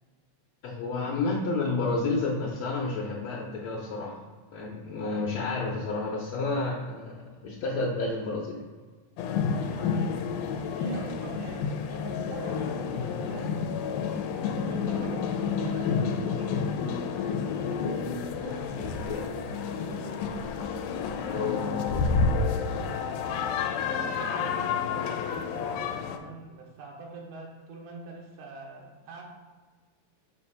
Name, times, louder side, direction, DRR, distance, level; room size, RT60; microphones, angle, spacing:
voice 1, 0.6-4.2 4.5-8.6 18.8-19.5 21.3-22.3, left 3 dB, 70° left, -5 dB, 1.8 m, -31 dB
sound 1, 9.2-26.2, left 5 dB, 85° left, 2.0 m, -30 dB
voice 2, 9.5-10.5 10.8-17.9 18.3-20.5 22.7-23.4 23.8-29.2, right 4 dB, 85° right, -2 dB, 2.2 m, -45 dB
6.5 x 2.7 x 5.5 m, 1.4 s
omnidirectional pair, 3.5 m